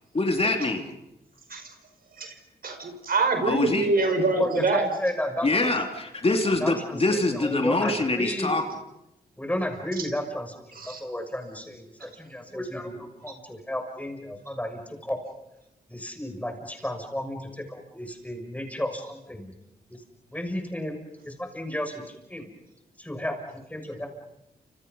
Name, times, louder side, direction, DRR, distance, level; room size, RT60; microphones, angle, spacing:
voice 1, 0.1-1.0 3.4-3.9 5.4-8.6, left 2 dB, 35° left, 4 dB, 2.9 m, -25 dB
voice 2, 2.6-4.8 10.8-11.0, right 3 dB, 60° right, 6 dB, 5.3 m, -25 dB
voice 3, 4.4-5.7 6.6-8.5 9.4-10.5 10.8-15.2 15.9-19.5 19.9-20.0 20.3-22.5 23.0-24.1, left 1 dB, 10° left, 4 dB, 6.5 m, -32 dB
30.0 x 27.5 x 5.5 m, 0.89 s
cardioid pair, 70°, 17 cm